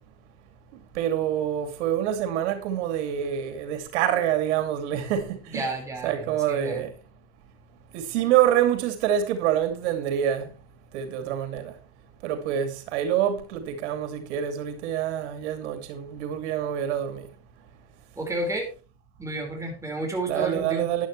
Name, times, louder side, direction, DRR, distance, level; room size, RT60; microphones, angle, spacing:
voice 1, 0.7-5.7 6.0-6.9 7.9-10.5 10.9-11.8 12.2-17.3 20.3-21.1, right 10 dB, 85° right, 2.6 m, -26 dB
voice 2, 5.5-6.9 18.1-18.7 19.2-20.9, right 2 dB, 10° right, 5.0 m, -31 dB
13.0 x 11.0 x 3.3 m
supercardioid pair, 125°, 34 cm